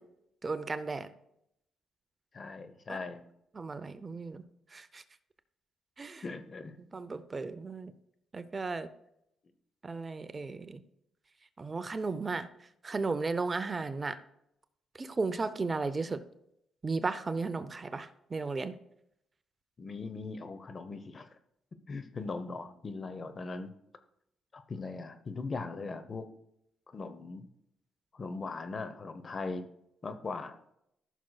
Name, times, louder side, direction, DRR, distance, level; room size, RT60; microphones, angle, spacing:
voice 1, 0.4-1.1 2.9-3.0 3.5-4.4 4.7-5.0 6.0-6.3 6.8-7.9 8.3-8.9 9.8-10.8 11.6-12.5 12.8-14.2 15.0-16.2 16.8-18.7, right 3 dB, 30° right, 12 dB, 0.6 m, -35 dB
voice 2, 2.3-3.3 6.2-6.7 19.8-21.3 21.9-23.7 24.5-26.3 26.9-27.5 28.1-29.7 30.0-30.7, left 3 dB, 40° left, 11 dB, 0.9 m, -39 dB
14.5 x 6.3 x 2.3 m, 0.77 s
cardioid pair, 90°, 0 cm